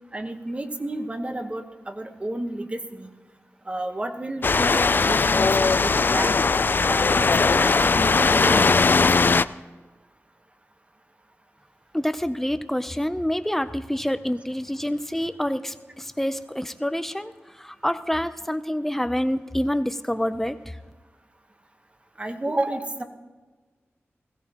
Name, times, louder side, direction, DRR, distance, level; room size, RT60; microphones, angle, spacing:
voice 1, 0.1-3.1 3.7-6.3 6.9-9.3 22.2-23.0, right 1 dB, 25° right, 6 dB, 1.2 m, -31 dB
sound 1, 4.4-9.4, left 4 dB, 45° left, 0.3 m, -19 dB
voice 2, 11.9-17.3 17.6-20.7, equal, 5° left, 11 dB, 0.6 m, -27 dB
21.0 x 16.0 x 3.0 m, 1.3 s
wide cardioid pair, 75°, 5 cm